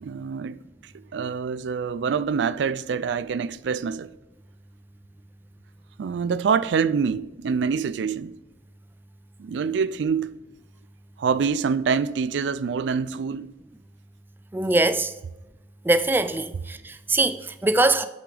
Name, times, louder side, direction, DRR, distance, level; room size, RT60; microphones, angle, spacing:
voice 1, 0.0-4.1 6.0-8.4 9.4-10.4 11.2-13.5, right 6 dB, 85° right, 0.4 m, -26 dB
voice 2, 14.5-15.1 15.8-18.1, right 2 dB, 10° right, 0.3 m, -22 dB
8.3 x 6.0 x 3.4 m
head